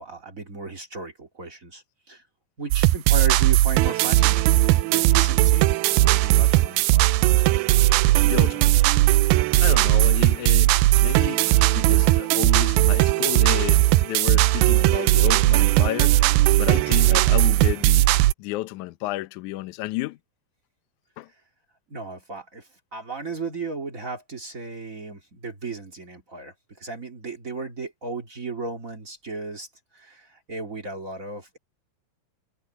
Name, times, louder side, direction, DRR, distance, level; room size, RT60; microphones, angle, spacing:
voice 1, 0.0-2.2 2.6-5.7 6.0-7.1 21.9-29.7 29.9-31.6, right 3 dB, 25° right, 2.0 m, -35 dB
sound 1, 2.7-18.3, right 17 dB, 85° right, 2.5 m, -18 dB
voice 2, 8.2-8.8 9.6-18.1 18.4-20.2 21.2-21.3, left 17 dB, 75° left, 1.9 m, -31 dB
omnidirectional pair, 4.3 m